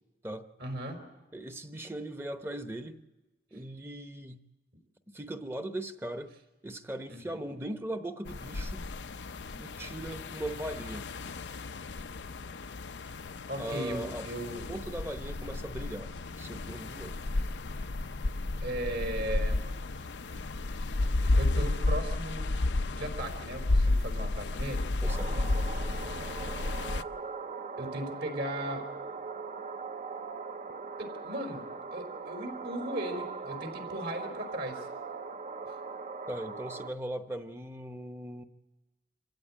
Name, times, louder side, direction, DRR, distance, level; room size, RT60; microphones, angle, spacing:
voice 1, 0.6-1.0 7.1-7.4 13.5-14.7 18.6-19.6 21.4-22.5 22.9-24.9 27.8-28.8 31.0-31.6 31.9-34.9, right 1 dB, 70° right, 5 dB, 4.8 m, -37 dB
voice 2, 1.3-2.9 3.5-4.4 5.1-6.3 6.6-8.8 9.5-11.1 13.6-14.3 14.7-16.1 16.4-17.1 25.0-25.5 36.3-38.4, right 1 dB, 15° right, 8 dB, 0.9 m, -39 dB
sound 1, 8.3-27.0, left 2 dB, 85° left, 0.6 m, -32 dB
sound 2, 25.1-36.9, right 4 dB, 40° right, 0.7 m, -40 dB
25.5 x 16.0 x 8.7 m, 1.2 s
head